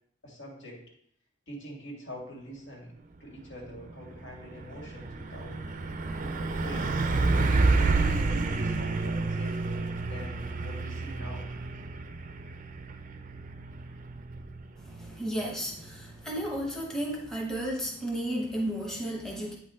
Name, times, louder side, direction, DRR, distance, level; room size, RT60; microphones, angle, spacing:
voice 1, 0.2-0.8 1.5-5.6 6.6-6.9 7.5-11.5, equal, 65° left, -2 dB, 2.1 m, -44 dB
Truck, 3.5-3.8 4.1-16.7, right 3 dB, 45° right, 0.5 m, -30 dB
voice 2, 14.8-19.6, equal, 5° left, -2 dB, 1.0 m, -33 dB
8.6 x 4.3 x 3.7 m, 0.70 s
head